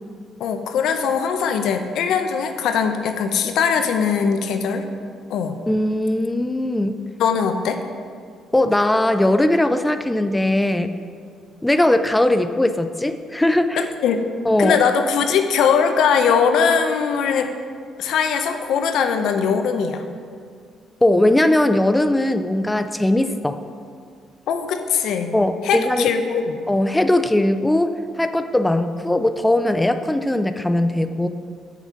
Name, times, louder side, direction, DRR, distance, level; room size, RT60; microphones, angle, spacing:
voice 1, 0.4-4.8 5.3-5.6 7.2-7.8 13.7-14.2 14.6-17.5 18.0-20.0 24.5-25.3 25.6-26.6, left 6 dB, 75° left, 7 dB, 0.7 m, -20 dB
voice 2, 5.7-7.0 8.5-10.9 11.6-13.8 14.5-14.8 21.0-23.6 25.3-26.1 26.7-31.3, left 1 dB, 10° left, 9 dB, 0.4 m, -19 dB
7.4 x 6.9 x 5.8 m, 2.2 s
cardioid pair, 85°, 0 cm